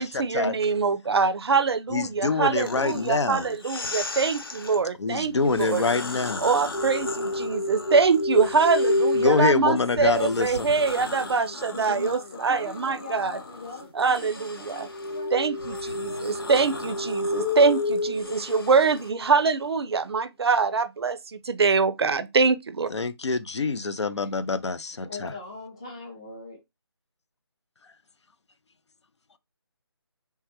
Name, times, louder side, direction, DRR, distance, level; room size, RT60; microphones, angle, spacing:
voice 1, 0.0-5.9 6.4-13.4 14.0-14.9 15.3-22.9, right 4 dB, 70° right, 0.4 m, -24 dB
voice 2, 1.9-3.5 5.0-6.4 9.1-10.7 22.9-25.3, left 4 dB, 90° left, 0.5 m, -25 dB
sound 1, 2.5-4.8 5.4-9.5 9.9-19.1, left 3 dB, 55° left, 0.7 m, -38 dB
sound 2, 6.7-10.4 14.9-19.3, left 2 dB, 70° left, 1.1 m, -29 dB
voice 3, 11.1-11.5 11.7-16.3 17.5-18.5 25.0-26.6, left 3 dB, 10° left, 0.4 m, -42 dB
3.3 x 2.2 x 2.7 m
figure-of-eight pair, 165°, 14 cm